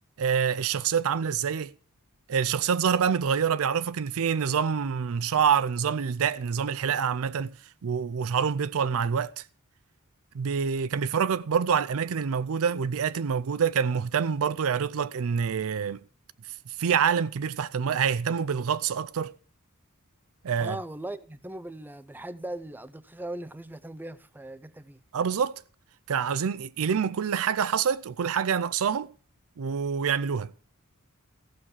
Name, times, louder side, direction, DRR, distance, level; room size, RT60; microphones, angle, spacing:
voice 1, 0.2-1.7 2.3-7.6 7.8-9.4 10.3-16.0 16.7-19.3 20.4-20.8 25.1-25.6 26.1-29.1 29.6-30.5, right 7 dB, 65° right, 0.5 m, -26 dB
voice 2, 20.6-25.0, right 1 dB, 10° right, 0.5 m, -39 dB
15.0 x 6.4 x 7.3 m
head